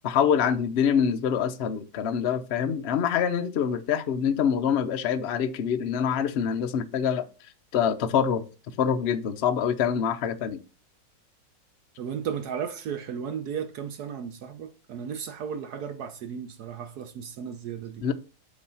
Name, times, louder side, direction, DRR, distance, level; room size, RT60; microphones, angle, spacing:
voice 1, 0.0-7.3 7.7-8.4 8.8-10.6 18.0-18.1, left 7 dB, 65° left, 0.6 m, -25 dB
voice 2, 12.0-18.1, right 7 dB, 65° right, 1.1 m, -35 dB
8.4 x 2.9 x 5.4 m
omnidirectional pair, 1.9 m